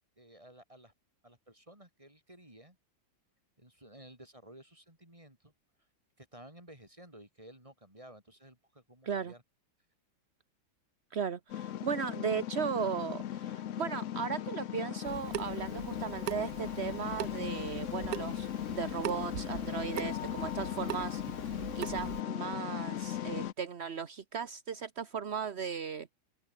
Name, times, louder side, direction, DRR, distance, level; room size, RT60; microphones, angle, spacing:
voice 1, 0.2-0.9 1.2-2.8 3.6-5.5 6.2-9.4, right 1 dB, 15° right, 6.8 m, -54 dB
voice 2, 11.1-21.2 21.7-26.1, right 7 dB, 40° right, 1.1 m, -36 dB
sound 1, 11.5-23.5, left 11 dB, 80° left, 0.6 m, -38 dB
Water tap faucet / Sink (filling or washing) / Drip, 15.0-22.2, right 14 dB, 70° right, 1.1 m, -42 dB
open air
omnidirectional pair, 2.2 m